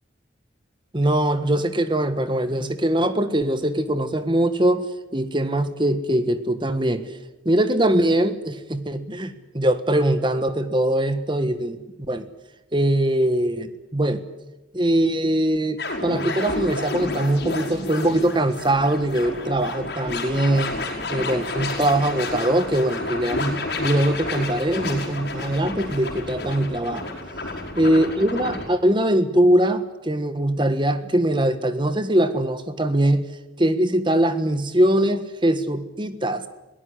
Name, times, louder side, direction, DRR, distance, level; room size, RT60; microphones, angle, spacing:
voice 1, 0.9-4.8 5.1-7.1 7.4-12.3 12.7-14.2 14.7-20.8 21.1-27.1 27.8-33.2 33.6-36.5, right 1 dB, 25° right, 10 dB, 1.5 m, -22 dB
sound 1, 15.8-28.6, left 2 dB, 55° left, 5.3 m, -30 dB
22.0 x 18.0 x 9.9 m, 1.0 s
head